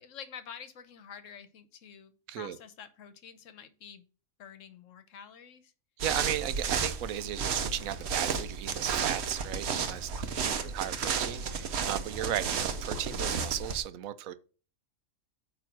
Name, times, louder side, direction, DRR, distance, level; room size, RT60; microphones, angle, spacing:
voice 1, 0.0-4.1 4.4-5.7 10.4-10.8, left 8 dB, 70° left, 1.2 m, -48 dB
sound 1, 6.0-13.8, right 6 dB, 60° right, 0.9 m, -32 dB
voice 2, 6.0-14.4, right 11 dB, 85° right, 1.0 m, -35 dB
8.8 x 3.1 x 5.9 m
omnidirectional pair, 1.4 m